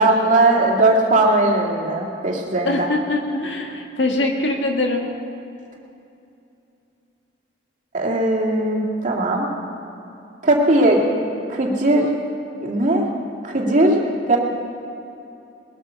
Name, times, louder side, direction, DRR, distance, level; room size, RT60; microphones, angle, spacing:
voice 1, 0.0-2.9 7.9-9.5 10.4-11.2 11.5-12.1 12.6-13.0 13.4-14.4, right 2 dB, 45° right, -1 dB, 2.3 m, -18 dB
voice 2, 2.6-5.1, left 2 dB, 85° left, 2 dB, 1.8 m, -22 dB
20.5 x 9.0 x 6.9 m, 2.7 s
head